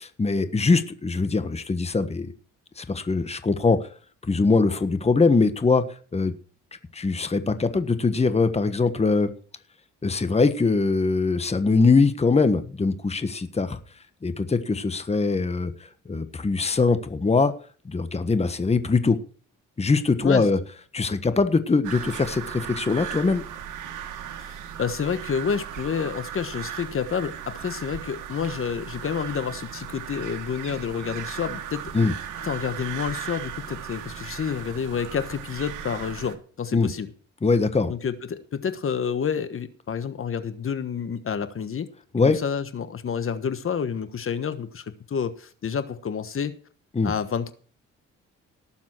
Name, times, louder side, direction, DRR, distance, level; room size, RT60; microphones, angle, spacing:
voice 1, 0.0-2.3 2.8-3.8 4.3-5.8 6.1-6.3 6.9-9.3 10.0-13.8 14.2-17.5 17.8-19.2 19.8-20.6 20.9-23.4 31.9-32.1 36.7-36.9 37.4-37.9 42.1-42.4 46.9-47.1, left 4 dB, 20° left, 1.3 m, -22 dB
sound 1, 21.8-36.4, right 9 dB, 90° right, 2.0 m, -37 dB
voice 2, 24.4-32.1 32.4-37.1 37.9-41.9 42.2-46.6 47.0-47.5, left 7 dB, 45° left, 1.4 m, -29 dB
18.5 x 7.4 x 4.6 m
cardioid pair, 90°, 30 cm